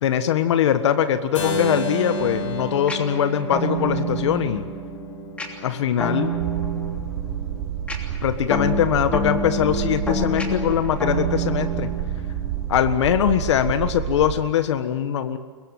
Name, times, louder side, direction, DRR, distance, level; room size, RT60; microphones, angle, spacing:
voice 1, 0.0-4.6 5.6-6.3 8.2-11.9 12.7-15.4, left 9 dB, 65° left, 10 dB, 1.5 m, -22 dB
Keyboard (musical), 1.3-7.2, equal, 85° left, 6.4 m, -32 dB
sound 1, 2.2-12.8, right 2 dB, 10° left, 3.0 m, -29 dB
sound 2, 6.4-14.4, right 10 dB, 55° right, 2.8 m, -29 dB
23.5 x 22.0 x 9.2 m, 1.6 s
hypercardioid pair, 155°, 16 cm